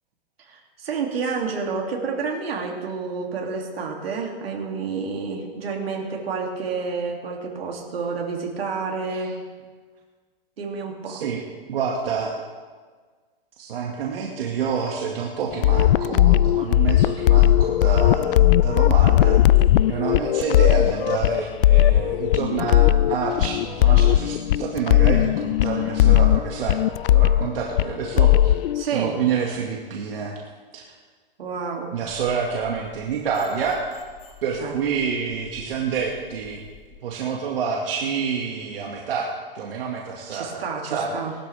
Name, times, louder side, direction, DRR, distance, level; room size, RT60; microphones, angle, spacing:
voice 1, 0.4-9.4 10.6-11.2 20.7-20.9 28.7-29.2 31.4-32.0 34.6-34.7 40.3-41.4, right 5 dB, 90° right, 0 dB, 2.8 m, -29 dB
voice 2, 11.1-11.4 11.7-12.4 13.6-19.4 19.9-26.8 27.1-28.6 28.8-30.3 30.7-30.8 31.9-33.8 34.4-36.6 37.0-41.1, right 6 dB, 75° right, -1 dB, 2.0 m, -28 dB
sound 1, 15.5-28.8, left 13 dB, 70° left, 0.4 m, -18 dB
sound 2, 32.0-36.9, left 6 dB, 45° left, 3.9 m, -49 dB
19.5 x 12.5 x 3.5 m, 1.5 s
hypercardioid pair, 155°, 29 cm